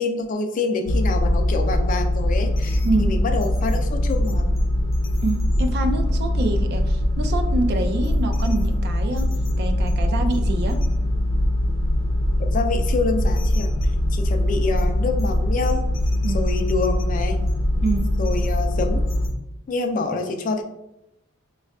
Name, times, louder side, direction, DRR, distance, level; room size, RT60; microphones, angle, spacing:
voice 1, 0.0-4.5 12.5-13.7 14.1-15.8 16.3-17.4 18.2-19.0 19.7-20.6, left 3 dB, 40° left, 5 dB, 0.3 m, -26 dB
sound 1, 0.8-19.3, left 1 dB, 70° left, 0.7 m, -22 dB
voice 2, 5.2-9.3 9.6-10.8 16.2-16.5 17.8-18.1, right 2 dB, 50° right, 6 dB, 0.4 m, -26 dB
5.2 x 2.3 x 2.3 m, 0.89 s
head